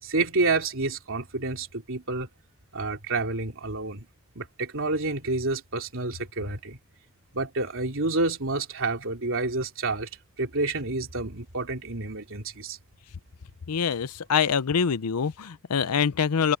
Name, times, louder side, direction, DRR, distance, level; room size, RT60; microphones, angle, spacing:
voice 1, 0.0-2.3 2.7-4.0 4.3-6.8 7.3-10.1 10.4-12.8, right 3 dB, 60° right, 3.4 m, -29 dB
voice 2, 13.7-16.6, left 6 dB, 90° left, 0.6 m, -25 dB
head